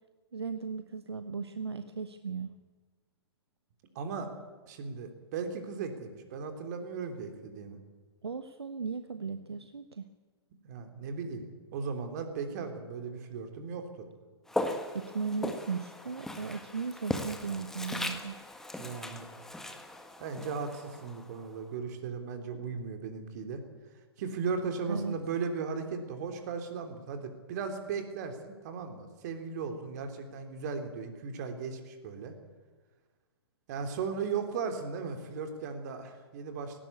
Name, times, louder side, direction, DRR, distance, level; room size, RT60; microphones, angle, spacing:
voice 1, 0.3-2.5 8.2-10.1 14.9-18.4 24.9-25.1, right 5 dB, 70° right, 9 dB, 1.1 m, -36 dB
voice 2, 3.9-4.3 4.7-7.8 10.6-11.4 11.7-14.1 18.8-19.3 20.2-23.6 24.2-32.3 33.7-36.8, right 5 dB, 40° right, 6 dB, 3.2 m, -37 dB
Walk footsteps, 14.5-21.6, left 1 dB, 5° left, 1.5 m, -38 dB
18.0 x 17.5 x 8.5 m, 1.4 s
figure-of-eight pair, 120°, 14 cm